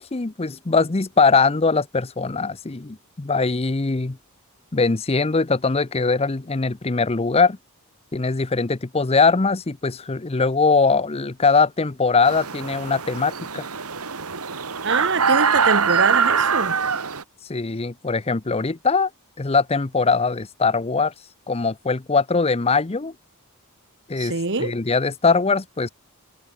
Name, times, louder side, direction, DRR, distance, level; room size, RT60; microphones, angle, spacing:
voice 1, 0.0-4.2 4.7-7.6 8.1-13.6 17.5-19.1 19.4-21.1 21.5-23.1 24.1-24.3 24.6-25.9, left 4 dB, 25° left, 0.7 m, -21 dB
sound 1, 12.2-17.2, right 6 dB, 85° right, 2.2 m, -23 dB
voice 2, 14.8-16.7 24.2-24.7, right 4 dB, 55° right, 1.6 m, -24 dB
head